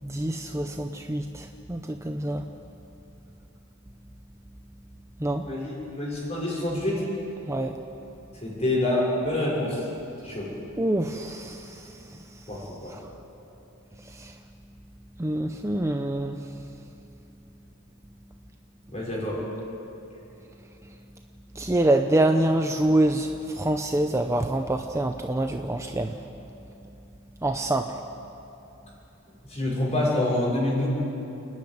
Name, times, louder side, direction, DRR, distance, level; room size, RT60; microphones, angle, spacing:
voice 1, 0.0-2.6 5.2-5.6 7.5-7.8 10.8-13.1 13.9-14.4 15.1-17.2 18.3-18.4 20.6-21.2 21.5-27.0 27.4-28.1, right 1 dB, 15° right, 5 dB, 0.6 m, -27 dB
voice 2, 5.4-7.1 8.4-9.8 10.2-10.5 12.5-13.0 18.9-19.4 29.4-30.9, left 1 dB, 30° left, -4 dB, 6.0 m, -27 dB
29.5 x 10.5 x 9.6 m, 2.9 s
head